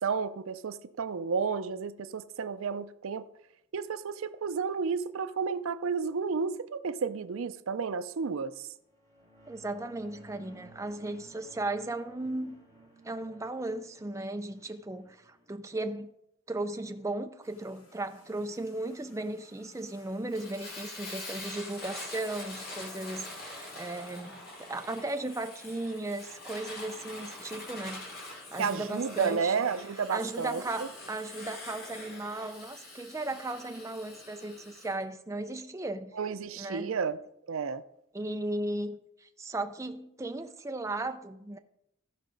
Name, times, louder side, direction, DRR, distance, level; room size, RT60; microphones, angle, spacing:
voice 1, 0.0-3.3 3.7-8.7 28.6-30.6 36.2-37.2 37.5-37.8, right 5 dB, 80° right, 0.5 m, -32 dB
sound 1, 8.8-15.5, right 1 dB, 15° left, 3.0 m, -57 dB
voice 2, 9.5-12.6 13.0-16.1 16.5-28.0 28.5-29.5 30.1-36.1 36.6-37.0 38.1-41.6, right 2 dB, 15° right, 0.4 m, -36 dB
sound 2, 17.4-25.4, left 2 dB, 90° left, 3.1 m, -60 dB
Fire, 20.3-34.9, left 2 dB, 45° left, 2.6 m, -44 dB
14.5 x 4.9 x 5.2 m
head